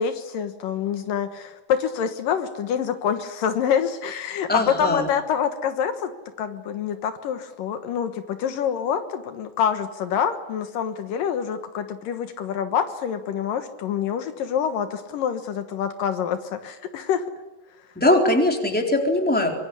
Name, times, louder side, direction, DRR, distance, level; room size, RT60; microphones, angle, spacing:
voice 1, 0.0-6.1 6.4-17.3, left 8 dB, 75° left, 8 dB, 2.9 m, -26 dB
voice 2, 4.5-5.0 18.0-19.5, left 1 dB, 5° left, 2 dB, 3.6 m, -20 dB
24.5 x 23.0 x 9.8 m, 1.1 s
omnidirectional pair, 4.0 m